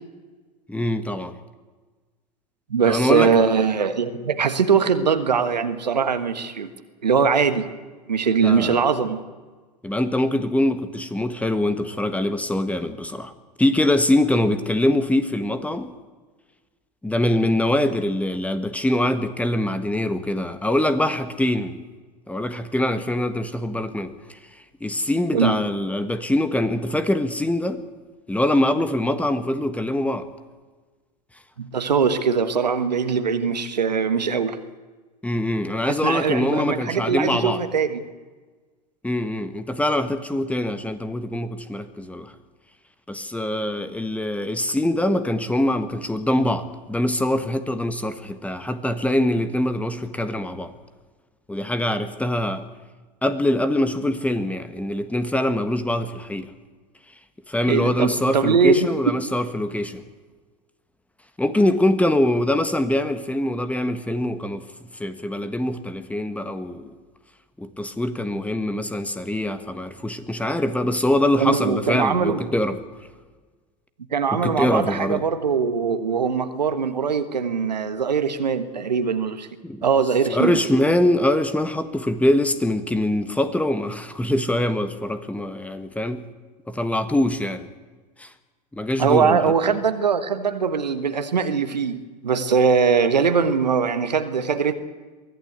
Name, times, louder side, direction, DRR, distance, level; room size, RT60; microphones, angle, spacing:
voice 1, 0.7-1.4 2.8-3.3 8.4-8.8 9.8-13.3 13.6-15.9 17.0-21.8 22.3-24.4 24.8-27.8 28.3-30.3 35.2-37.6 39.0-42.3 43.1-50.7 51.5-52.6 53.2-56.5 57.5-60.0 61.4-64.6 65.0-66.9 67.6-72.8 74.3-75.2 79.6-79.9 80.3-86.2 86.7-87.7 88.2-88.3 88.7-89.4, left 1 dB, 5° left, 11 dB, 1.5 m, -23 dB
voice 2, 2.7-6.7 7.0-7.7 8.1-9.2 25.3-25.6 31.6-34.6 35.8-38.0 57.7-58.9 71.4-72.4 74.1-79.5 79.8-80.6 89.0-94.7, right 6 dB, 80° right, 10 dB, 1.5 m, -21 dB
23.0 x 15.0 x 8.1 m, 1.3 s
figure-of-eight pair, 85°, 21 cm